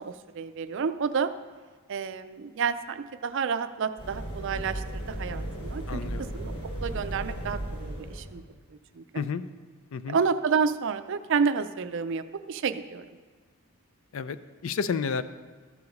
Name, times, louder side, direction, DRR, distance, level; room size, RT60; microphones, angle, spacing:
voice 1, 0.0-1.3 1.9-6.5 6.8-8.4 8.9-9.0 10.1-13.1, right 5 dB, 55° right, 12 dB, 0.4 m, -30 dB
sound 1, 4.0-8.5, right 1 dB, 85° left, 2.8 m, -35 dB
voice 2, 5.9-6.4 9.1-9.4 9.9-10.2 14.1-14.4 14.6-15.2, left 5 dB, 60° left, 13 dB, 0.4 m, -30 dB
13.5 x 4.8 x 5.2 m, 1.5 s
head